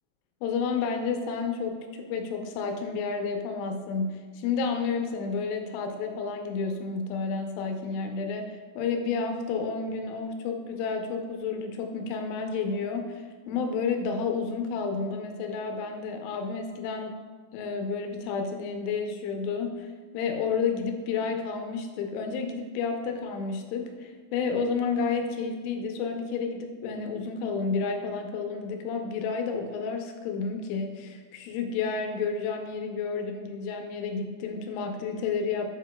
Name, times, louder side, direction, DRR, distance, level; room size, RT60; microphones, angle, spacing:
voice 1, 0.4-17.2 17.5-19.9 20.1-35.7, left 5 dB, 80° left, 4 dB, 3.1 m, -31 dB
7.9 x 7.0 x 2.2 m, 1.5 s
omnidirectional pair, 5.7 m